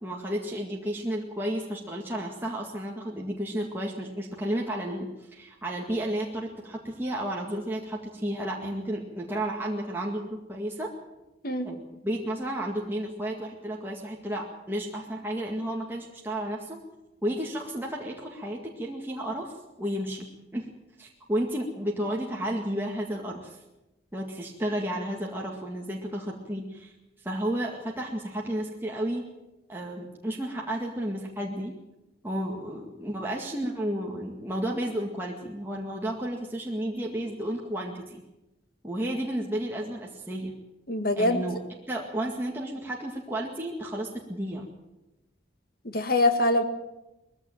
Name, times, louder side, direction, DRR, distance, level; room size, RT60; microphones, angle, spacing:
voice 1, 0.0-10.9 11.6-16.8 17.2-19.5 19.8-20.3 20.5-20.7 21.0-23.6 24.1-26.9 27.2-29.2 29.7-31.7 32.2-38.2 38.8-40.5 41.2-41.6 41.9-44.7, right 1 dB, 10° right, -1 dB, 2.0 m, -32 dB
voice 2, 40.9-41.4 45.9-46.6, left 1 dB, 50° left, 8 dB, 1.9 m, -23 dB
20.5 x 15.5 x 9.0 m, 0.97 s
head